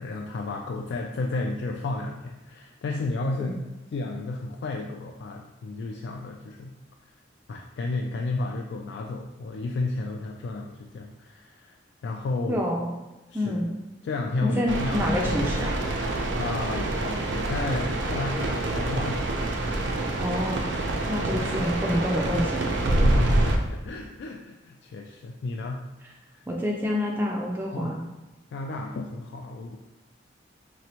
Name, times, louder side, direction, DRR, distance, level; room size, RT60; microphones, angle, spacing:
voice 1, 0.0-3.6 3.9-6.8 7.5-11.8 12.0-12.7 13.3-13.6 14.0-15.6 16.4-19.3 21.2-21.7 22.9-25.8 26.3-26.4 27.7-28.0 28.5-29.8, left 2 dB, 70° left, 1 dB, 0.3 m, -32 dB
voice 2, 12.5-12.9 13.3-13.7 14.4-15.8 20.2-20.7 21.1-23.1 26.5-28.1, equal, 10° right, -2 dB, 0.3 m, -27 dB
sound 1, 14.7-23.6, right 1 dB, 75° right, 0.5 m, -26 dB
4.3 x 3.0 x 2.8 m, 1.1 s
head